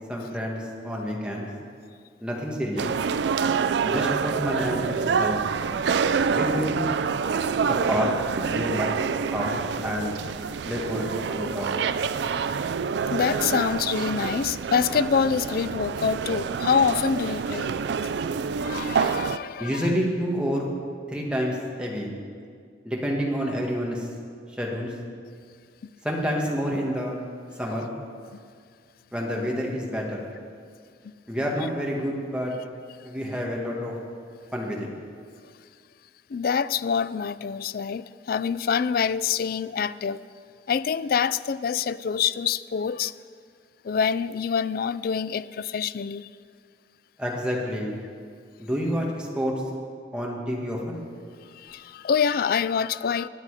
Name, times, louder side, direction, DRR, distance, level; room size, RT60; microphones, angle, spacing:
voice 1, 0.1-1.5 2.2-2.9 3.8-5.4 6.3-6.9 7.6-8.1 8.5-9.0 9.3-10.1 10.6-11.7 19.6-20.7 21.1-22.1 22.8-24.1 24.5-24.9 26.0-27.2 27.6-27.9 29.1-30.2 31.3-32.5 33.0-33.9 34.5-34.9 47.2-47.9 48.6-49.5 50.1-51.0, equal, 5° right, 1.8 m, -28 dB
sound 1, 2.8-19.4, right 6 dB, 65° right, 0.4 m, -27 dB
voice 2, 13.1-17.7 18.6-19.9 28.3-28.4 36.3-40.2 40.7-43.1 43.8-46.3 51.5-53.3, left 6 dB, 55° left, 0.3 m, -26 dB
19.0 x 9.0 x 4.9 m
head